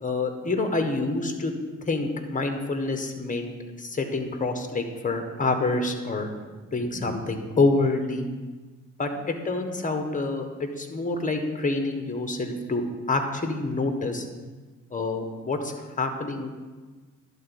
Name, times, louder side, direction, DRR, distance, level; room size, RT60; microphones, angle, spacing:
voice 1, 0.0-1.5 1.8-3.5 3.8-6.3 6.7-8.3 9.0-12.8 13.1-14.2 14.9-16.5, left 3 dB, 25° left, 5 dB, 1.5 m, -27 dB
11.5 x 4.2 x 7.2 m, 1.3 s
supercardioid pair, 65°, 32 cm